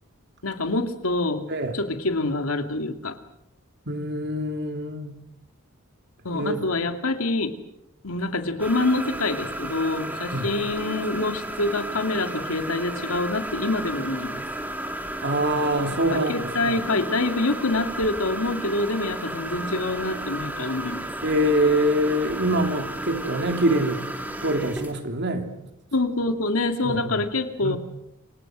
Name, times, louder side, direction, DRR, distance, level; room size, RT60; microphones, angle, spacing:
voice 1, 0.4-1.5 1.7-3.2 6.2-7.5 8.0-14.4 15.9-21.1 25.9-27.8, left 2 dB, 85° left, 7 dB, 2.5 m, -26 dB
voice 2, 3.9-5.2 6.3-6.6 10.3-10.5 15.2-16.3 16.6-16.8 21.2-24.0 24.4-25.5 26.8-27.1 27.6-27.8, right 1 dB, 55° right, 5 dB, 3.3 m, -24 dB
sound 1, 8.6-24.9, right 1 dB, 10° right, 3.4 m, -33 dB
28.0 x 26.0 x 6.3 m, 0.83 s
head